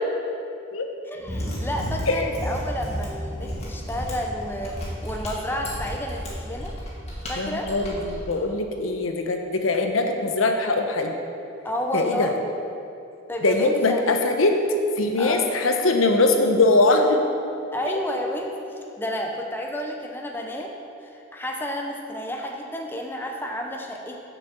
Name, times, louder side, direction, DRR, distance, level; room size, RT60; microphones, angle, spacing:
voice 1, 1.1-6.7 7.3-7.8 11.6-12.3 13.3-14.0 15.2-15.5 17.7-20.7 21.0-24.2, equal, 10° left, 1 dB, 0.6 m, -31 dB
Mechanisms, 1.2-8.3, equal, 30° left, 2.0 m, -32 dB
voice 2, 7.4-11.2 11.9-12.3 13.4-14.6 15.0-17.2, left 2 dB, 80° left, 4 dB, 0.9 m, -21 dB
6.8 x 6.1 x 7.3 m, 2.6 s
head